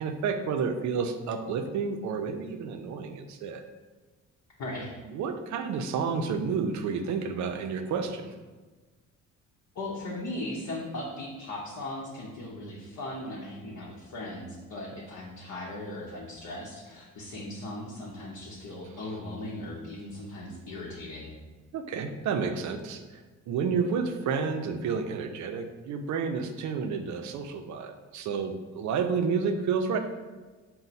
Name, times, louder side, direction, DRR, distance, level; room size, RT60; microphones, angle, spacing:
voice 1, 0.0-3.6 5.1-8.3 21.7-30.0, right 5 dB, 70° right, 6 dB, 0.5 m, -30 dB
voice 2, 4.6-4.9 9.7-21.4, left 1 dB, 65° left, -4 dB, 0.8 m, -38 dB
4.2 x 2.1 x 4.0 m, 1.3 s
cardioid pair, 90°, 30 cm